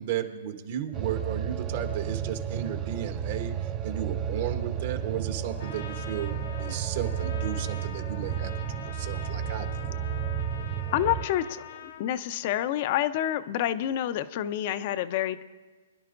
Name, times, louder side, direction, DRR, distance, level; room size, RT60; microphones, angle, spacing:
voice 1, 0.0-3.5 3.8-9.9, right 10 dB, 55° right, 5 dB, 1.4 m, -34 dB
sound 1, 0.9-11.3, right 8 dB, 25° right, 0.6 m, -32 dB
Trumpet, 5.6-12.1, left 9 dB, 65° left, 1.1 m, -44 dB
voice 2, 10.9-15.4, left 12 dB, 45° left, 13 dB, 0.6 m, -28 dB
24.5 x 11.0 x 2.6 m, 1.3 s
hypercardioid pair, 140°, 0 cm